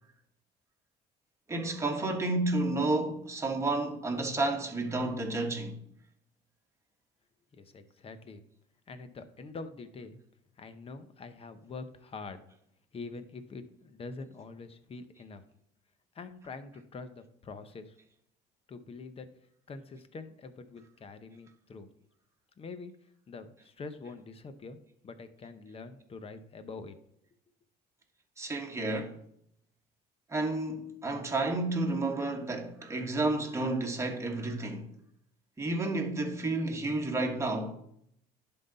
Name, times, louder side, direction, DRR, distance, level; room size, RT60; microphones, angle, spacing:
voice 1, 1.5-5.8 28.4-29.1 30.3-34.9 35.6-37.7, right 2 dB, 15° right, 1.3 m, -31 dB
voice 2, 7.5-8.5 8.9-10.2 10.6-12.4 12.9-15.4 16.1-17.9 18.7-19.3 19.7-21.9 22.6-22.9 23.3-24.8 25.0-26.9, left 4 dB, 35° left, 0.8 m, -45 dB
10.5 x 3.9 x 4.0 m
cardioid pair, 110°, 17 cm